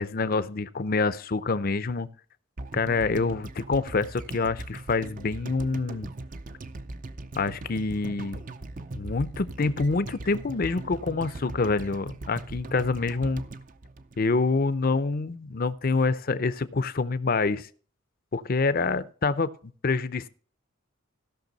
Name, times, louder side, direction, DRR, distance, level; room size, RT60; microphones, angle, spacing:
voice 1, 0.0-2.1 2.7-6.1 7.4-8.4 8.9-13.4 14.2-17.7 18.3-19.5 19.8-20.3, left 3 dB, 45° left, 14 dB, 0.6 m, -26 dB
sound 1, 2.6-14.8 15.0-15.1, right 2 dB, 40° right, 0.6 m, -40 dB
16.0 x 6.1 x 4.0 m, 0.43 s
head